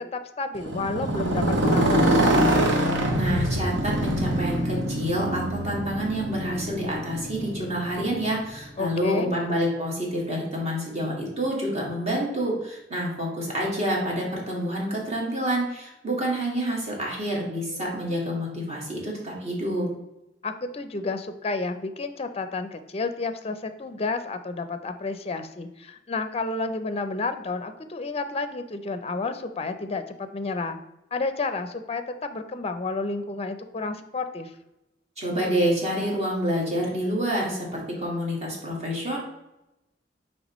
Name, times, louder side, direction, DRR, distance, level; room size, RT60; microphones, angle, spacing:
voice 1, 0.0-2.5 8.8-9.3 20.4-30.8 31.1-34.5, left 3 dB, 35° left, 10 dB, 0.5 m, -31 dB
Motorcycle, 0.5-8.6, right 1 dB, 70° right, 1.1 m, -24 dB
voice 2, 3.1-19.9 35.2-39.2, equal, 35° right, -3 dB, 2.0 m, -28 dB
9.2 x 3.4 x 3.0 m, 0.93 s
head